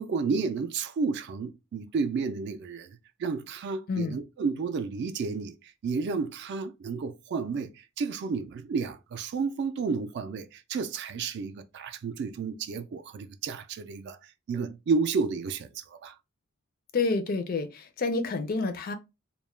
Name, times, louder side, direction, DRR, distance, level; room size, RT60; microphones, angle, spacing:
voice 1, 0.0-5.6 5.8-14.2 14.5-16.1, right 4 dB, 50° right, 0.3 m, -31 dB
voice 2, 16.9-18.9, left 3 dB, 40° left, 0.4 m, -28 dB
2.2 x 2.1 x 3.0 m
head